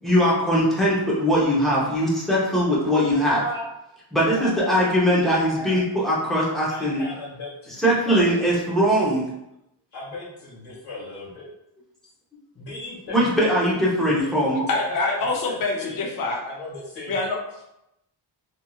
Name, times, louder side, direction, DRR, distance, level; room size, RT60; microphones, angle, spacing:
voice 1, 0.0-3.4 4.1-7.0 7.8-9.2 13.1-14.6, equal, ahead, -6 dB, 0.7 m, -21 dB
voice 2, 3.3-3.7 4.3-4.5 5.6-5.8 6.4-7.8 8.1-8.7 9.9-11.5 12.5-13.5 14.1-15.2 15.4-16.0 16.4-17.3, left 1 dB, 85° left, -7 dB, 1.4 m, -36 dB
voice 3, 14.7-16.4 17.1-17.4, left 3 dB, 45° left, 0 dB, 0.5 m, -25 dB
2.9 x 2.7 x 2.3 m, 0.86 s
wide cardioid pair, 160°, 49 cm